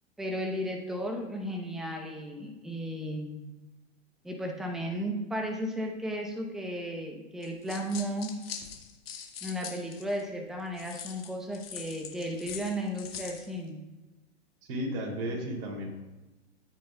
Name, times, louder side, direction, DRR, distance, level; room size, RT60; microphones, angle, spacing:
voice 1, 0.2-3.4 4.2-8.3 9.4-13.8, equal, ahead, 2 dB, 0.8 m, -34 dB
sound 1, 7.4-10.2 10.8-13.5, left 8 dB, 55° left, 1.6 m, -42 dB
voice 2, 14.7-15.9, equal, 45° right, 0 dB, 2.9 m, -33 dB
13.0 x 8.5 x 2.3 m, 1.1 s
figure-of-eight pair, 110°, 35 cm